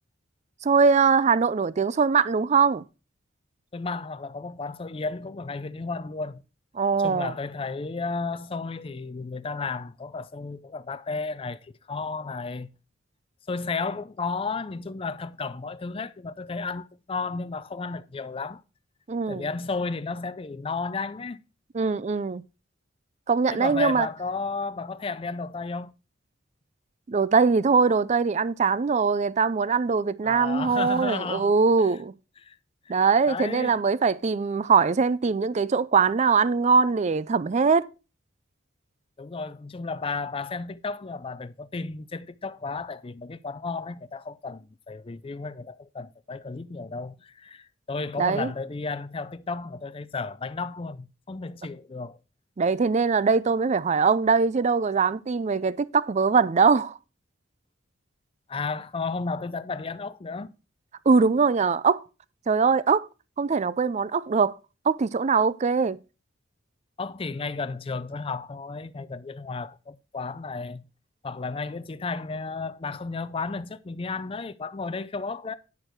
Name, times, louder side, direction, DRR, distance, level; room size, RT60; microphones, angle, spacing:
voice 1, 0.6-2.8 6.8-7.3 19.1-19.4 21.7-22.4 23.3-24.1 27.1-32.1 32.9-37.9 48.2-48.5 52.6-57.0 61.1-62.0 62.5-63.1 63.4-64.6 64.9-66.0, right 5 dB, 35° right, 0.4 m, -22 dB
voice 2, 3.7-6.4 7.0-12.7 13.5-18.6 19.3-21.4 23.5-25.9 30.2-31.5 31.8-32.0 32.4-32.6 33.3-33.8 39.2-52.2 58.5-60.5 67.0-70.8 71.2-75.5, left 4 dB, 30° left, 0.5 m, -33 dB
9.7 x 6.7 x 4.4 m
head